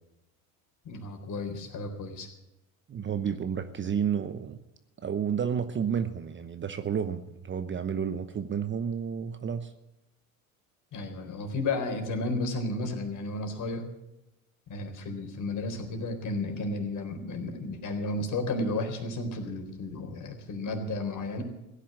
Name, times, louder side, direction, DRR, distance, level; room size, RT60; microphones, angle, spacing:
voice 1, 0.9-2.3 10.9-13.9 14.7-21.4, left 2 dB, 45° left, 5 dB, 4.1 m, -33 dB
voice 2, 2.9-4.6 5.0-9.7, right 7 dB, 25° right, 11 dB, 0.9 m, -31 dB
16.0 x 10.0 x 7.7 m, 0.93 s
hypercardioid pair, 85°, 43 cm